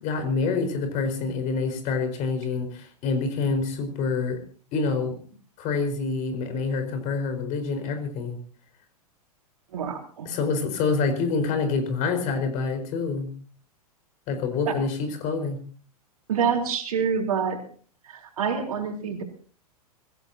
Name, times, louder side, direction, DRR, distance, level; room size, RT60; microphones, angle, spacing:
voice 1, 0.0-4.4 4.7-5.2 5.6-8.4 10.2-13.3 14.3-15.6, left 4 dB, 40° left, 7 dB, 4.9 m, -27 dB
voice 2, 9.7-10.3 14.7-14.8 16.3-17.6 18.0-19.2, right 6 dB, 65° right, 3 dB, 3.9 m, -27 dB
24.5 x 16.0 x 2.9 m, 0.43 s
hypercardioid pair, 105°, 20 cm